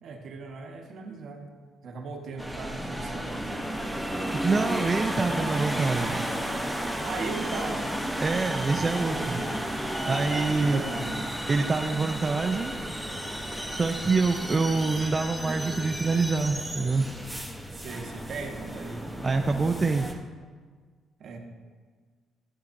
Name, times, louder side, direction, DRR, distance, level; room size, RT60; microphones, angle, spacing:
voice 1, 0.0-1.5 1.8-3.6 7.0-7.9 9.1-9.6 10.0-11.2 17.7-19.2 21.2-21.4, right 4 dB, 65° right, 3 dB, 1.1 m, -38 dB
sound 1, 2.4-20.1, equal, ahead, 0.9 m, -33 dB
voice 2, 4.4-6.3 8.2-9.4 10.1-10.8 11.5-12.7 13.7-17.1 19.2-20.2, right 4 dB, 30° right, 4 dB, 0.5 m, -26 dB
12.5 x 7.3 x 2.6 m, 1.6 s
cardioid pair, 90°, 0 cm